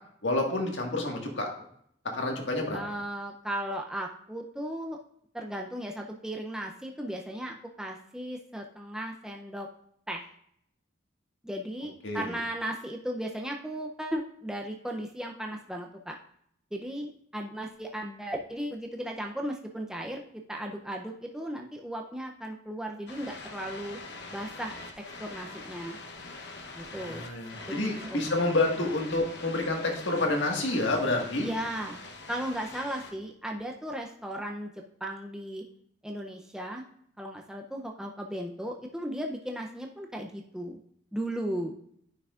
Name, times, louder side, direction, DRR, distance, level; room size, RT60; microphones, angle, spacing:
voice 1, 0.2-1.5 2.1-2.8 12.0-12.4 27.0-31.5, left 2 dB, 75° left, 2 dB, 1.6 m, -28 dB
voice 2, 2.7-5.0 5.3-9.7 10.1-10.3 11.4-16.2 16.7-20.2 20.5-24.0 24.3-24.8 25.2-26.0 26.7-27.4 27.7-28.2 31.4-32.0 32.3-34.7 35.0-35.6 36.0-36.8 37.2-40.8 41.1-41.7, right 1 dB, 5° right, 1 dB, 0.5 m, -36 dB
sound 1, 23.1-33.1, left 3 dB, 60° left, 0.9 m, -44 dB
9.8 x 5.9 x 2.4 m, 0.68 s
head